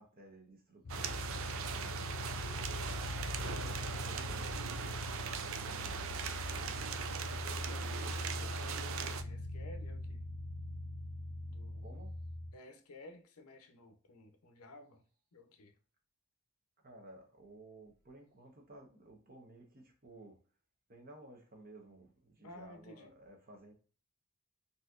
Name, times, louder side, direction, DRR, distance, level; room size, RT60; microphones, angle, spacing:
voice 1, 0.0-2.4 3.4-5.0 5.4-7.2 11.7-12.2 16.8-20.4 20.9-23.7, right 2 dB, 40° right, 0.9 m, -56 dB
sound 1, 0.8-12.5, left 1 dB, 45° left, 0.4 m, -41 dB
sound 2, 0.9-9.2, right 7 dB, 65° right, 0.4 m, -40 dB
voice 2, 3.4-3.8 7.3-10.2 11.5-11.8 12.5-15.0 15.3-15.7 22.4-23.1, left 1 dB, 85° left, 0.6 m, -54 dB
4.1 x 2.8 x 2.3 m
head